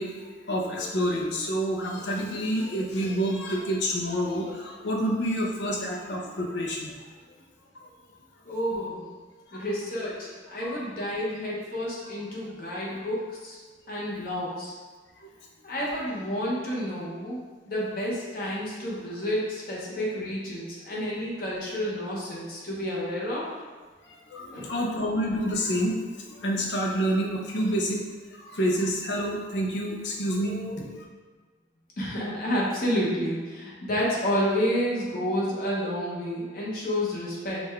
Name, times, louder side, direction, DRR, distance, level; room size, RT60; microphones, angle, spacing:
voice 1, 0.0-6.9 7.7-7.9 9.5-9.7 15.2-15.3 24.0-31.0, equal, 70° left, -1 dB, 0.7 m, -28 dB
voice 2, 8.5-9.0 9.5-13.6 13.9-14.7 15.6-17.4 17.6-23.5 24.5-24.8 32.0-37.6, equal, 50° left, -5 dB, 1.0 m, -30 dB
5.1 x 2.3 x 3.2 m, 1.4 s
head